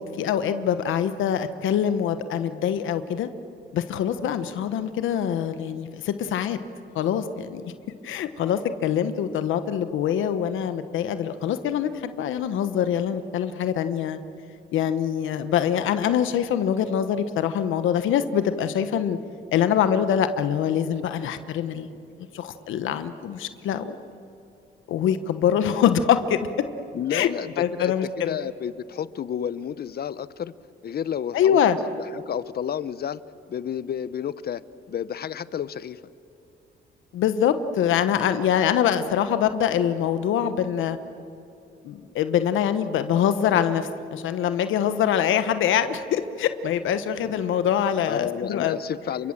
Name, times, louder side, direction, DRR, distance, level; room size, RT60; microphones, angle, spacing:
voice 1, 0.0-3.3 3.7-6.6 6.9-7.7 8.0-14.2 14.7-19.2 19.5-21.9 22.3-24.0 24.9-26.5 27.1-27.3 27.6-28.3 31.3-31.8 37.1-41.0 41.8-48.8, left 9 dB, 80° left, 10 dB, 1.1 m, -24 dB
voice 2, 26.9-30.5 30.8-31.6 32.0-33.2 33.5-34.6 34.9-36.0 47.3-47.4 48.1-49.3, left 9 dB, 50° left, 16 dB, 0.9 m, -31 dB
29.0 x 24.5 x 7.5 m, 2.8 s
cardioid pair, 90°, 20 cm